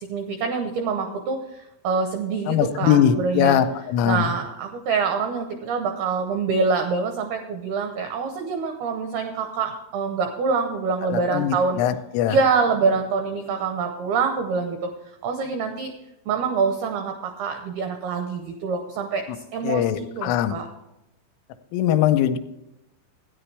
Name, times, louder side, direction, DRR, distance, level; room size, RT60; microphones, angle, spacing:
voice 1, 0.1-3.6 4.1-11.8 12.3-14.9 15.2-15.9 16.3-19.2 19.5-20.7, right 5 dB, 85° right, 5 dB, 2.2 m, -25 dB
voice 2, 2.5-4.3 11.1-12.4 19.6-20.5 21.7-22.4, left 10 dB, 90° left, 8 dB, 3.2 m, -21 dB
13.0 x 9.9 x 3.3 m, 0.89 s
omnidirectional pair, 5.7 m